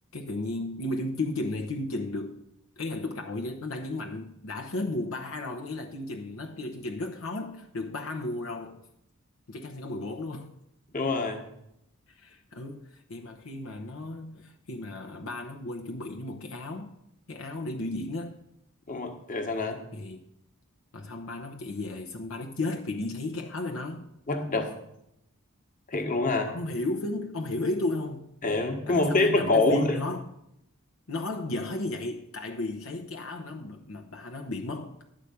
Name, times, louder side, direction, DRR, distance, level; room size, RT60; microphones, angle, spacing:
voice 1, 0.1-2.4 2.8-8.8 9.5-10.5 12.1-16.9 17.3-18.4 19.9-20.2 20.9-24.1 26.5-28.3 28.9-30.3 31.1-35.0, left 2 dB, 70° left, 0.9 m, -34 dB
voice 2, 10.9-11.4 18.9-19.8 24.3-24.7 25.9-26.5 28.4-30.0, left 2 dB, 40° left, 1.4 m, -25 dB
11.5 x 5.0 x 8.3 m
head